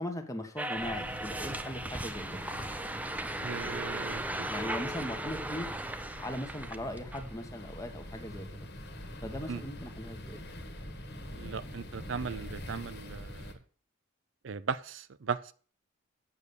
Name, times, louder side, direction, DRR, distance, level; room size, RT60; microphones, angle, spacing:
voice 1, 0.0-2.5 4.5-5.7 6.2-8.7 9.2-10.4, left 1 dB, 15° left, 5 dB, 1.1 m, -39 dB
sound 1, 0.6-7.2, right 1 dB, 5° right, 0.6 m, -37 dB
sound 2, 0.7-13.5, equal, 55° left, 1.7 m, -44 dB
voice 2, 3.4-4.5 9.5-9.6 11.3-13.5 14.4-15.5, right 5 dB, 65° right, 15 dB, 0.5 m, -37 dB
8.4 x 6.8 x 6.9 m, 0.43 s
head